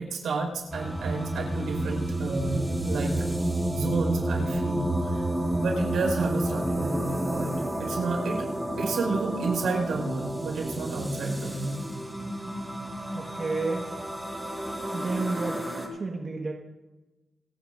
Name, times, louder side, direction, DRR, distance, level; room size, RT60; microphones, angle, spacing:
voice 1, 0.0-3.1 3.7-5.3 5.6-8.5 8.8-11.8, right 3 dB, 90° right, 0 dB, 4.9 m, -30 dB
sound 1, 0.7-15.9, right 1 dB, 10° right, 2.4 m, -30 dB
voice 2, 13.1-13.9 14.9-16.5, right 3 dB, 40° right, 1 dB, 1.5 m, -31 dB
29.0 x 10.0 x 2.6 m, 1.1 s
wide cardioid pair, 120°, 0 cm